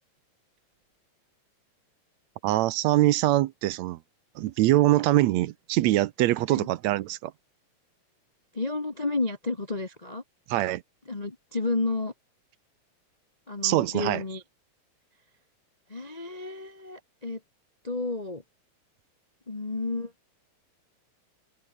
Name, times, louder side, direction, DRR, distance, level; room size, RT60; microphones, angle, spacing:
voice 1, 2.4-4.0 4.4-7.3 10.5-10.8 13.6-14.2, right 16 dB, 75° right, 1.9 m, -23 dB
voice 2, 8.5-10.2 11.1-12.1 13.5-14.4 15.9-17.4 17.8-18.4 19.5-20.1, left 3 dB, 70° left, 0.4 m, -31 dB
open air
omnidirectional pair, 3.4 m